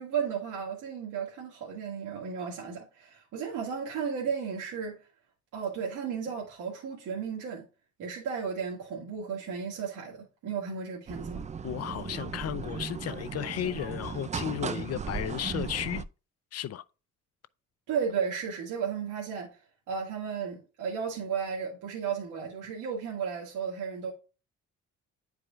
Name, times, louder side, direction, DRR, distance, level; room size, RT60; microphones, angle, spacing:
voice 1, 0.0-5.0 5.5-7.6 8.0-11.4 17.9-19.5 19.9-24.1, right 6 dB, 85° right, 1.8 m, -34 dB
sound 1, 11.1-16.0, right 6 dB, 25° right, 0.4 m, -36 dB
voice 2, 11.6-16.1 16.5-16.8, left 11 dB, 55° left, 0.5 m, -34 dB
10.0 x 4.7 x 2.4 m
cardioid pair, 90°, 30 cm